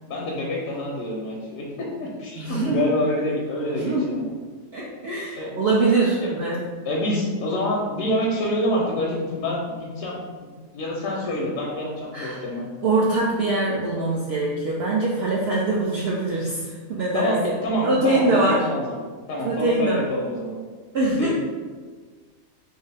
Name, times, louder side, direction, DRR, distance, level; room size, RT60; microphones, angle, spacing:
voice 1, 0.1-4.3 5.4-5.5 6.2-6.3 6.8-12.7 17.1-19.0 19.3-20.6 21.2-21.3, left 1 dB, 75° left, -2 dB, 1.0 m, -27 dB
voice 2, 2.4-2.9 3.7-4.2 4.7-6.6 12.1-12.4 12.8-17.3 17.8-18.7 19.4-20.1 20.9-21.3, right 2 dB, 65° right, -4 dB, 0.6 m, -23 dB
3.6 x 2.6 x 3.3 m, 1.5 s
omnidirectional pair, 1.4 m